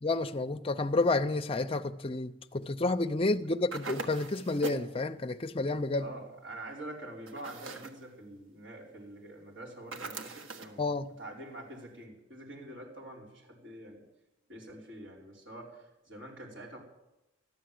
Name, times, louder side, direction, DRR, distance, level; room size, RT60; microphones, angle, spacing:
voice 1, 0.0-6.1 10.8-11.1, left 2 dB, 30° left, 0.5 m, -30 dB
sound 1, 3.7-4.9 7.3-8.0 9.9-10.8, right 3 dB, 85° right, 1.5 m, -41 dB
voice 2, 6.0-10.9 11.2-14.0 14.5-16.8, right 1 dB, 65° right, 4.9 m, -46 dB
14.0 x 12.0 x 7.7 m
head